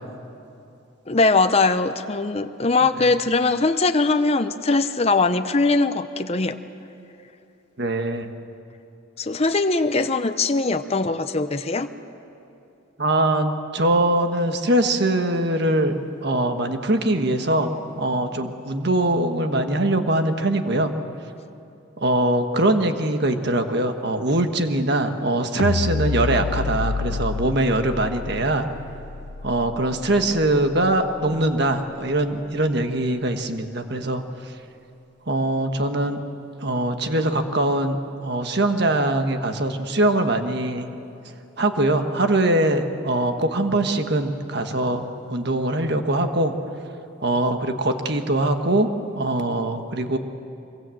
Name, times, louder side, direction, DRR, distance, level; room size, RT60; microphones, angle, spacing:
voice 1, 1.1-6.6 9.2-11.9, left 3 dB, 30° left, 8 dB, 0.7 m, -21 dB
voice 2, 7.8-8.3 13.0-15.9 16.2-20.9 22.0-28.7 29.4-34.5 35.3-36.2 36.6-38.0 38.2-40.9 41.6-45.0 45.3-46.5 47.2-48.9 49.1-50.2, right 1 dB, 55° right, 6 dB, 1.5 m, -22 dB
sound 1, 25.6-31.9, left 4 dB, 75° left, 0.5 m, -29 dB
24.0 x 24.0 x 7.8 m, 2.7 s
head